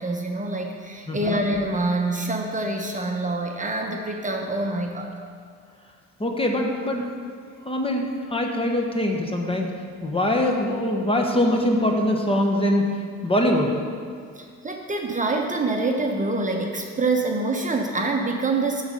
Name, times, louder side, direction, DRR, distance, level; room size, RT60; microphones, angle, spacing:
voice 1, 0.0-5.1 14.4-18.8, right 2 dB, 25° right, 1 dB, 0.8 m, -26 dB
voice 2, 1.1-1.4 6.2-7.1 7.6-9.7 10.0-12.9 13.2-13.8, left 1 dB, 20° left, 2 dB, 1.1 m, -23 dB
11.0 x 4.1 x 6.4 m, 2.2 s
cardioid pair, 90°, 30 cm